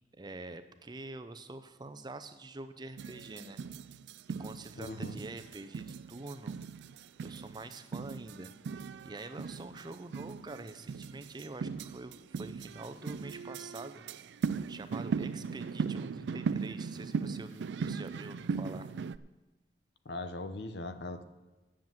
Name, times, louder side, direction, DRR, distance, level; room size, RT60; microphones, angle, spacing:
voice 1, 0.2-3.6 4.4-6.6 7.2-14.0 14.7-18.9, right 2 dB, 25° right, 9 dB, 0.6 m, -46 dB
sound 1, 3.0-19.2, right 5 dB, 75° right, 0.4 m, -38 dB
voice 2, 4.8-5.2 20.0-21.2, left 2 dB, 65° left, 10 dB, 0.8 m, -40 dB
9.7 x 7.3 x 7.6 m, 1.2 s
head